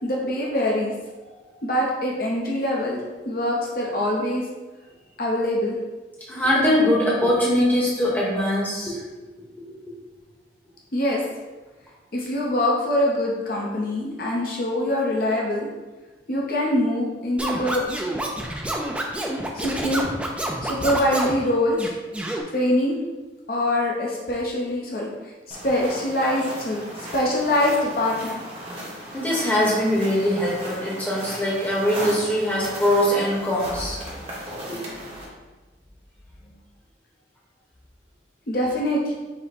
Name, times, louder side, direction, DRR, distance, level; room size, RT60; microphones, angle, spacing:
voice 1, 0.0-0.9 1.6-3.0 3.2-4.4 5.2-5.8 10.9-11.2 12.1-15.7 16.3-17.9 19.5-20.0 20.6-21.9 22.5-23.0 23.5-28.4 38.5-39.2, left 1 dB, 50° left, -3 dB, 0.7 m, -24 dB
voice 2, 6.3-9.0 9.7-9.8 29.1-34.0 34.7-34.8, left 1 dB, 10° left, -6 dB, 0.9 m, -22 dB
Scratching (performance technique), 17.4-21.4 21.8-22.4, right 1 dB, 5° right, 0.3 m, -28 dB
sound 1, 25.5-35.3, equal, 30° right, 1.1 m, -36 dB
5.3 x 2.1 x 4.2 m, 1.2 s
head